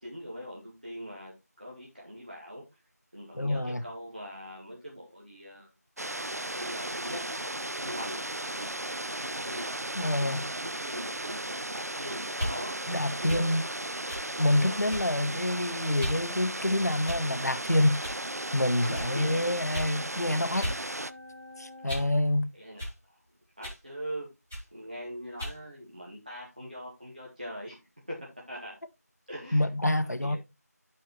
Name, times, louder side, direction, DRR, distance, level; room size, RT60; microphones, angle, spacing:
voice 1, 0.0-2.6 3.1-5.7 6.0-12.8 13.1-13.5 14.4-15.0 18.8-19.5 20.3-20.6 22.5-22.8 23.1-23.2 23.6-24.3 24.7-28.2 28.5-28.8 29.3-29.7 30.0-30.4, equal, 30° right, 1.8 m, -42 dB
voice 2, 3.3-3.8 9.9-10.5 12.9-13.6 14.4-18.0 18.5-20.7 21.6-22.5 29.5-30.4, left 1 dB, 75° left, 1.1 m, -27 dB
sound 1, 6.0-21.1, right 1 dB, 65° right, 0.6 m, -36 dB
sound 2, 12.3-12.6 13.3-13.5 14.1-14.3 14.9-15.2 16.0-16.2 17.0-17.4 18.0-18.2 18.9-19.1 19.7-19.9 20.6-20.8 21.2-22.1 22.8-23.0 23.6-23.8 24.5-24.7 25.4-25.6, equal, 10° right, 1.3 m, -35 dB
sound 3, 18.0-22.1, left 2 dB, 80° right, 1.3 m, -47 dB
12.0 x 4.7 x 3.2 m
figure-of-eight pair, 175°, 9 cm